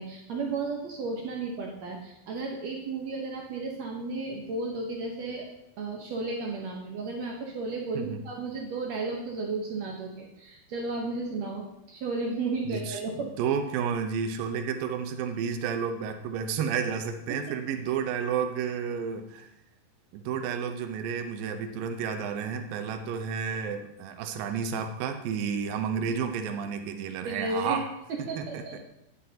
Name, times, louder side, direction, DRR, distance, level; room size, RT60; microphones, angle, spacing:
voice 1, 0.0-5.5 5.8-13.3 27.2-27.8 28.1-28.8, right 3 dB, 90° right, 0 dB, 1.5 m, -33 dB
voice 2, 12.7-19.5 20.1-27.9 28.2-28.8, right 7 dB, 75° right, 6 dB, 2.4 m, -31 dB
11.5 x 9.8 x 2.8 m, 0.87 s
omnidirectional pair, 4.7 m